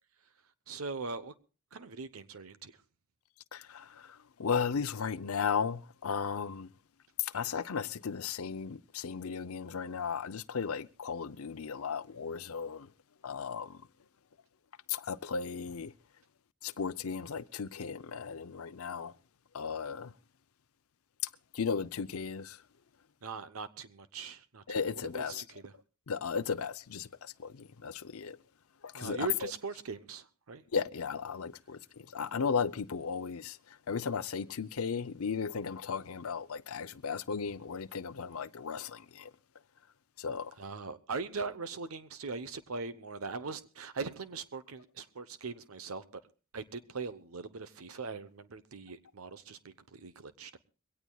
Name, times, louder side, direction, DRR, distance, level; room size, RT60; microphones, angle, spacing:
voice 1, 0.7-1.3 1.7-2.8 23.2-24.6 24.9-25.7 28.9-30.6 40.6-46.2 46.5-50.6, right 4 dB, 85° right, 0.9 m, -41 dB
voice 2, 3.5-6.7 7.2-12.9 13.2-13.8 14.9-15.9 16.6-19.1 19.5-20.1 21.5-22.6 24.7-25.4 26.1-28.4 28.8-29.5 30.7-39.3 40.2-40.6, left 6 dB, 85° left, 0.6 m, -35 dB
22.5 x 17.5 x 2.3 m
head